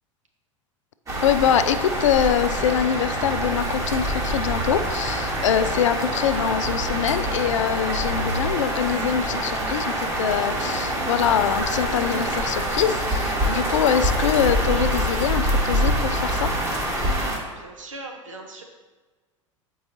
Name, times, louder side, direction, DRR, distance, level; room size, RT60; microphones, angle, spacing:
sound 1, 1.1-17.4, right 1 dB, 20° right, 1.1 m, -25 dB
voice 1, 1.2-16.5, left 9 dB, 70° left, 11 dB, 0.4 m, -24 dB
sound 2, 2.9-17.4, left 1 dB, 45° left, 1.1 m, -36 dB
voice 2, 17.6-18.6, right 2 dB, 80° right, 2 dB, 0.9 m, -39 dB
7.6 x 4.6 x 2.7 m, 1.3 s
figure-of-eight pair, 85°, 17 cm